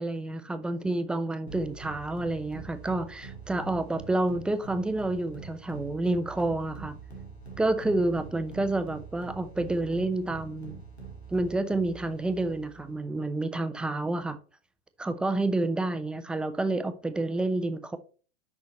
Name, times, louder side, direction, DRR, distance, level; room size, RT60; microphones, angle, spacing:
voice 1, 0.0-7.0 7.6-10.8 11.3-14.4 15.0-18.0, right 2 dB, 5° right, 0.4 m, -29 dB
sound 1, 1.5-13.0, right 4 dB, 90° left, 2.4 m, -44 dB
6.5 x 5.7 x 4.2 m
figure-of-eight pair, 95°, 31 cm